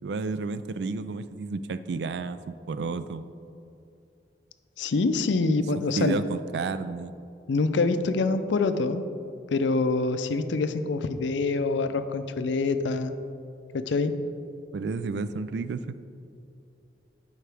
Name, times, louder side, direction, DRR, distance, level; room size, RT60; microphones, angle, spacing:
voice 1, 0.0-3.3 6.0-7.1 14.4-14.5 14.7-16.0, right 4 dB, 70° right, 13 dB, 0.3 m, -31 dB
voice 2, 4.8-6.1 7.5-9.0 9.5-13.1 13.7-14.1, left 3 dB, 90° left, 10 dB, 0.5 m, -25 dB
12.0 x 4.8 x 3.4 m, 2.6 s
head